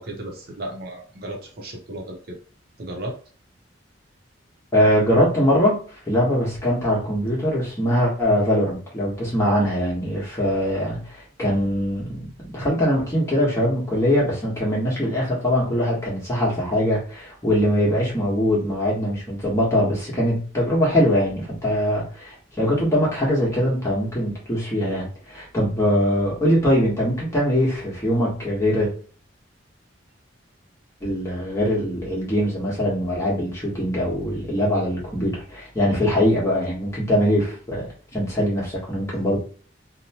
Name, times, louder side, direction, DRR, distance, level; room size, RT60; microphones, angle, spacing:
voice 1, 0.0-2.4 2.8-3.1 39.2-39.4, right 1 dB, 55° right, 1 dB, 0.7 m, -34 dB
voice 2, 4.7-5.8 6.1-12.3 12.5-28.9 31.0-37.9 38.1-39.4, equal, 15° left, -5 dB, 1.2 m, -22 dB
2.8 x 2.1 x 2.8 m, 0.40 s
head